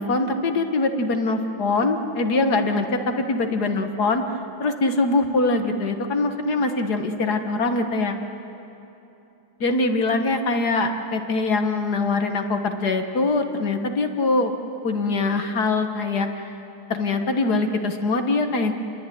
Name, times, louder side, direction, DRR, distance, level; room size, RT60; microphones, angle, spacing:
voice 1, 0.0-4.2 4.6-8.2 9.6-14.5 14.8-16.5 16.9-18.7, left 3 dB, 55° left, 6 dB, 1.9 m, -23 dB
28.5 x 21.5 x 9.3 m, 2.9 s
omnidirectional pair, 2.2 m